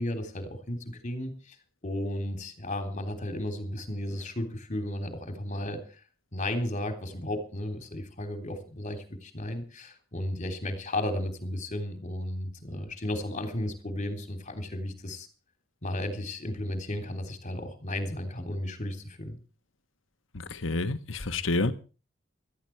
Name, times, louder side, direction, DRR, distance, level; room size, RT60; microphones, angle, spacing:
voice 1, 0.0-1.6 1.8-5.9 6.3-15.3 15.8-19.4, left 1 dB, 40° left, 3.5 m, -34 dB
voice 2, 20.5-21.7, left 2 dB, 90° left, 1.4 m, -28 dB
18.0 x 13.5 x 4.7 m
head